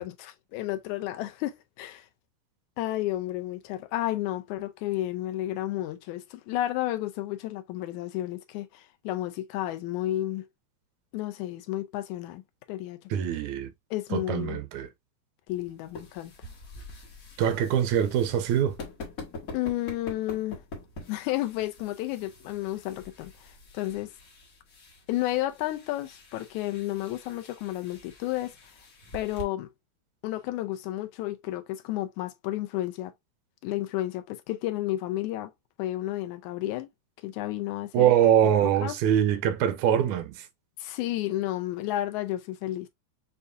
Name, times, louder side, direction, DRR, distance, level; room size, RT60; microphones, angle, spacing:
voice 1, 0.0-2.1 2.8-10.5 11.1-12.4 12.7-13.0 13.9-14.6 15.5-16.3 19.5-20.6 21.1-24.1 25.1-28.5 29.1-29.7 30.2-33.1 33.6-35.5 35.8-36.9 37.2-38.1 38.8-39.0 40.8-42.9, left 15 dB, 85° left, 2.1 m, -32 dB
voice 2, 13.1-13.7 14.1-14.9 17.4-18.8 37.9-40.5, right 10 dB, 85° right, 2.0 m, -23 dB
sound 1, 15.5-29.4, left 2 dB, 50° left, 1.0 m, -46 dB
6.7 x 2.4 x 2.5 m
omnidirectional pair, 3.3 m